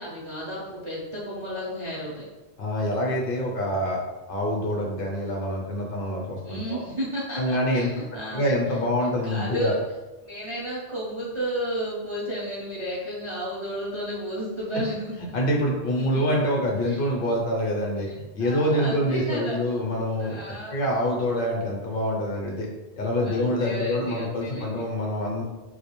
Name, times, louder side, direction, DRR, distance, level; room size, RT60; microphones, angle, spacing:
voice 1, 0.0-2.2 6.4-8.5 9.2-9.8 10.2-15.1 16.8-17.0 18.0-18.1 18.4-19.6 20.2-20.8 23.2-24.8, equal, 45° right, -8 dB, 0.4 m, -32 dB
voice 2, 2.6-4.0 4.3-6.8 7.4-7.9 8.3-9.7 15.2-18.1 18.3-20.4 20.7-22.7 23.0-25.4, equal, 65° left, -2 dB, 0.7 m, -26 dB
2.3 x 2.1 x 2.9 m, 1.1 s
omnidirectional pair, 1.1 m